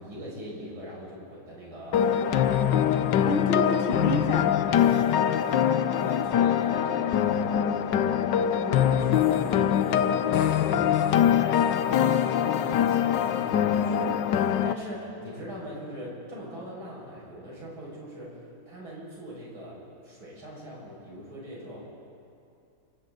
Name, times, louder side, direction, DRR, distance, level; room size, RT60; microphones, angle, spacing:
voice 1, 0.0-2.8 6.0-8.2 8.6-14.2 14.6-18.4 18.7-19.8 20.0-21.8, equal, 80° right, -5 dB, 7.0 m, -41 dB
sound 1, 1.9-14.7, left 9 dB, 70° left, 1.3 m, -23 dB
voice 2, 2.0-2.3 3.2-4.9, left 2 dB, 30° left, 3 dB, 1.3 m, -30 dB
28.5 x 26.0 x 4.0 m, 2.6 s
omnidirectional pair, 2.2 m